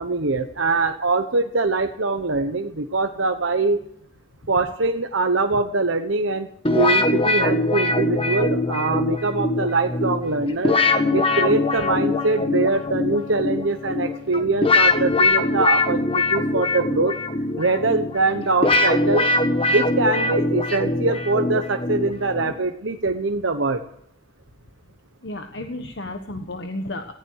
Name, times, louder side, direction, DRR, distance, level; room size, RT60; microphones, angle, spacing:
voice 1, 0.0-3.8 4.5-6.5 6.7-10.8 11.1-17.1 17.6-19.3 19.7-23.8, right 3 dB, 80° right, 6 dB, 1.1 m, -23 dB
sound 1, 6.6-22.6, left 2 dB, 30° left, 1.5 m, -22 dB
voice 2, 25.2-27.1, left 1 dB, 60° left, 6 dB, 1.3 m, -32 dB
19.0 x 15.5 x 4.8 m, 0.67 s
head